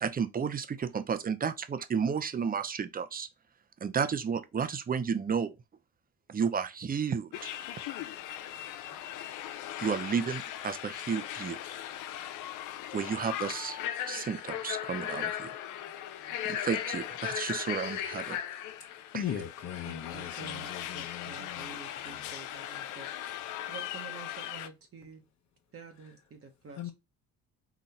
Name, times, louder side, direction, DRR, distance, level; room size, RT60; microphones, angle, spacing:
voice 1, 0.0-3.3 3.8-5.5 6.3-7.5 9.8-11.6 12.9-13.8 14.1-15.6 16.4-18.4 19.1-19.2, right 6 dB, 30° right, 0.6 m, -32 dB
sound 1, 7.3-24.7, left 11 dB, 90° left, 0.5 m, -38 dB
voice 2, 19.1-22.3 26.8-26.9, left 10 dB, 60° left, 0.8 m, -39 dB
voice 3, 19.8-23.1 23.7-25.2 25.7-26.9, right 4 dB, 50° right, 1.0 m, -48 dB
4.0 x 2.3 x 4.2 m
cardioid pair, 90°, 30 cm